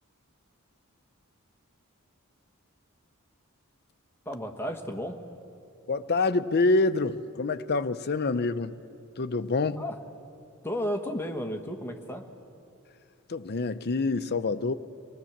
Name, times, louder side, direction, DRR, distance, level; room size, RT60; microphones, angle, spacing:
voice 1, 4.2-5.2 9.8-10.0 10.6-12.2, equal, 10° left, 1.5 m, -33 dB
voice 2, 5.9-8.7 9.2-9.8 13.3-14.7, left 3 dB, 50° left, 0.7 m, -26 dB
25.5 x 19.5 x 7.3 m
head